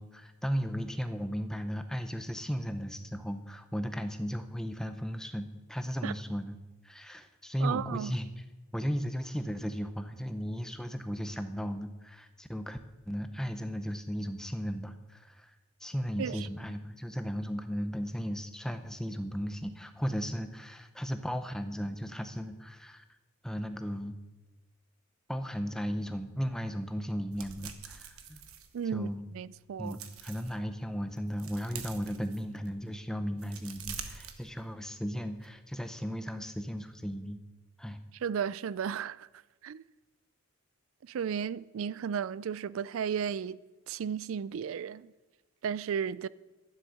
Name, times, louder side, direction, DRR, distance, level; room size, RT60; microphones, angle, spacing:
voice 1, 0.0-6.6 6.8-8.4 8.7-12.8 13.1-15.5 15.8-23.0 23.4-24.1 25.3-28.4 28.9-29.3 29.8-37.4 37.8-38.0, equal, 5° left, 0.6 m, -35 dB
voice 2, 7.6-8.1 16.2-16.5 28.7-29.1 29.3-30.0 38.2-39.3 39.6-39.8 41.0-43.6 43.9-45.1 45.6-46.3, right 7 dB, 70° right, 0.3 m, -34 dB
sound 1, 27.3-29.3 29.7-30.6 31.0-32.8 33.2-35.0 35.3-35.5, right 7 dB, 85° right, 1.2 m, -46 dB
11.5 x 10.5 x 6.4 m
head